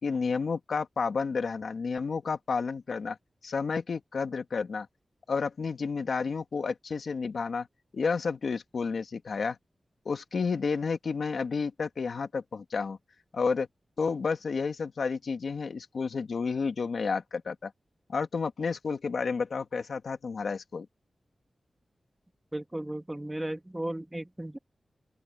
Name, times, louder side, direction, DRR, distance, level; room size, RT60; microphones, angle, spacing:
voice 1, 0.0-3.2 3.4-4.9 5.3-7.7 7.9-9.6 10.1-13.0 13.3-13.7 14.0-17.7 18.1-20.9, left 5 dB, 70° left, 2.0 m, -31 dB
voice 2, 22.5-24.6, right 1 dB, 10° right, 1.8 m, -35 dB
open air
wide cardioid pair, 135°, 0 cm